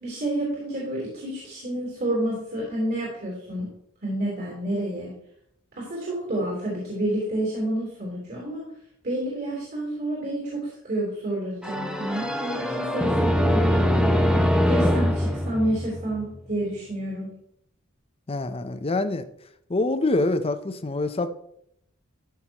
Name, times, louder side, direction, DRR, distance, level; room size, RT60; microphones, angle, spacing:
voice 1, 0.0-3.7 4.0-5.1 5.8-8.7 9.0-13.9 14.7-17.3, right 1 dB, 50° right, 3.6 m, -29 dB
sound 1, 11.6-16.4, equal, 5° right, 0.8 m, -23 dB
voice 2, 18.3-19.2 19.7-21.3, left 2 dB, 30° left, 0.6 m, -25 dB
13.5 x 6.0 x 2.9 m
head